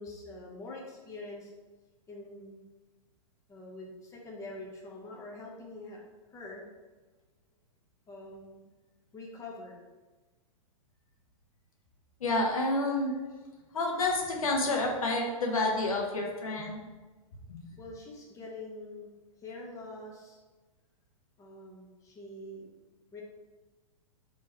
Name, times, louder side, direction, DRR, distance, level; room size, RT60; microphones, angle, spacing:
voice 1, 0.0-1.5 2.1-2.6 3.5-6.0 6.3-6.9 8.1-8.6 9.1-9.8 17.8-19.1 19.4-20.4 21.4-22.7 23.1-23.2, left 2 dB, 15° left, -3 dB, 0.8 m, -45 dB
voice 2, 12.2-13.1 13.7-16.8 17.5-17.6, left 2 dB, 75° left, 0 dB, 1.0 m, -29 dB
3.6 x 3.0 x 4.4 m, 1.2 s
hypercardioid pair, 115°, 18 cm